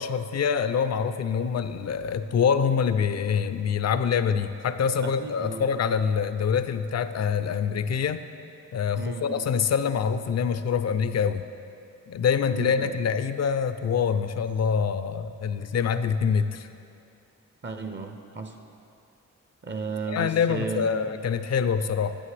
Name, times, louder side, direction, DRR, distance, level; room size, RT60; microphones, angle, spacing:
voice 1, 0.0-8.3 8.7-11.4 12.1-16.7 20.1-22.2, left 6 dB, 55° left, 11 dB, 0.4 m, -25 dB
voice 2, 5.0-5.6 9.0-9.4 12.5-12.9 17.6-18.6 19.6-21.1, right 4 dB, 35° right, 6 dB, 0.6 m, -34 dB
8.9 x 8.5 x 3.3 m, 2.6 s
cardioid pair, 60°, 32 cm